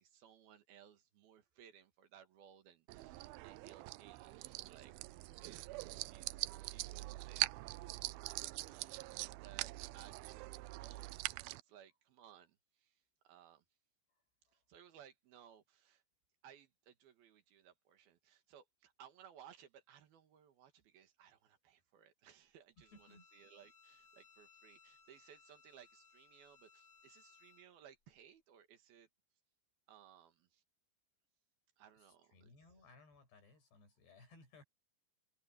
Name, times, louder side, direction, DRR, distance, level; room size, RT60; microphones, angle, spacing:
voice 1, 0.0-4.9 5.4-8.0 8.4-11.2 11.5-13.6 14.5-16.0 16.4-29.1 29.9-30.6 31.8-32.5, right 9 dB, 65° right, 3.5 m, -62 dB
sound 1, 2.9-11.6, right 20 dB, 90° right, 2.1 m, -43 dB
Bowed string instrument, 22.8-27.7, left 5 dB, 30° left, 3.4 m, -65 dB
voice 2, 22.9-23.3 32.0-34.6, left 3 dB, 75° left, 10.0 m, -62 dB
omnidirectional pair, 4.9 m